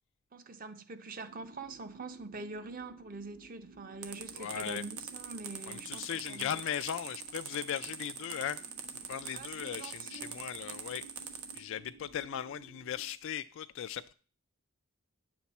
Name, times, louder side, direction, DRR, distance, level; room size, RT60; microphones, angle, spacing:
voice 1, 0.3-6.6 9.3-10.4, right 3 dB, 40° right, 0.8 m, -45 dB
sound 1, 1.3-13.1, right 3 dB, 75° right, 1.9 m, -56 dB
sound 2, 4.0-11.6, right 8 dB, 90° right, 1.3 m, -42 dB
voice 2, 4.4-4.8 5.7-8.7 9.1-11.0 11.5-14.1, left 9 dB, 60° left, 0.3 m, -38 dB
9.8 x 7.1 x 4.2 m
head